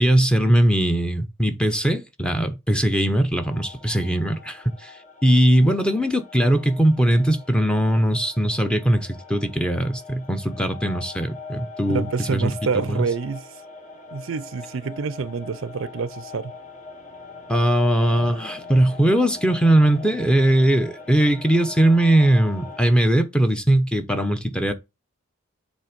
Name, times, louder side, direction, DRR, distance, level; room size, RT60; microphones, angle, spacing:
voice 1, 0.0-13.0 17.5-24.7, right 1 dB, 5° left, 0.8 m, -20 dB
sound 1, 3.4-22.9, left 4 dB, 35° left, 1.2 m, -42 dB
voice 2, 11.9-13.5 14.1-16.5, right 5 dB, 65° right, 0.5 m, -27 dB
7.4 x 3.4 x 5.1 m
head